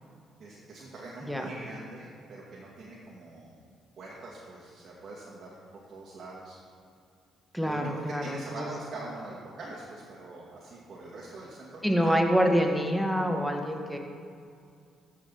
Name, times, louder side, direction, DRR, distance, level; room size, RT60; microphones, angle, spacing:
voice 1, 0.4-3.6 4.0-5.5 5.9-6.6 7.6-12.0, right 2 dB, 50° right, -5 dB, 2.3 m, -43 dB
voice 2, 7.5-8.7 11.8-14.0, equal, ahead, 2 dB, 1.8 m, -26 dB
14.0 x 6.7 x 4.2 m, 2.4 s
hypercardioid pair, 50°, 0 cm